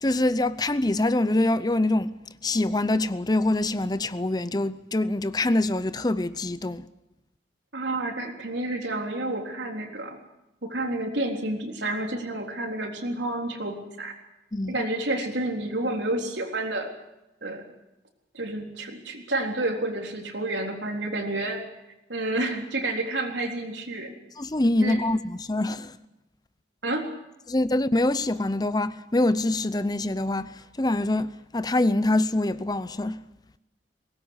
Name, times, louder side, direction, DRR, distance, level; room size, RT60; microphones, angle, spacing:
voice 1, 0.0-2.1 2.4-6.8 14.5-14.8 24.4-26.0 27.5-33.2, left 2 dB, 20° left, 0.7 m, -25 dB
voice 2, 7.7-10.2 10.6-14.2 14.7-16.9 17.4-17.6 18.3-21.6 22.1-24.1 24.8-25.0 26.8-27.1, right 2 dB, 85° right, 3.8 m, -30 dB
22.0 x 19.0 x 8.0 m
head